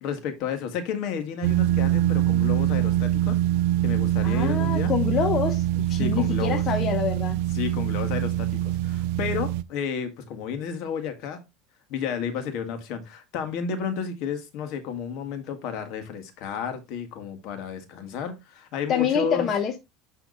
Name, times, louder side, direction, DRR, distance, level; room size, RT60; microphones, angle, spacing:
voice 1, 0.0-3.4 3.8-4.9 6.0-6.6 7.5-11.4 11.9-19.5, left 7 dB, 60° left, 1.8 m, -32 dB
sound 1, 1.4-9.6, right 14 dB, 75° right, 0.5 m, -24 dB
voice 2, 4.2-7.4 18.9-19.7, left 7 dB, 35° left, 1.0 m, -26 dB
9.6 x 3.5 x 4.0 m
supercardioid pair, 130°, 0 cm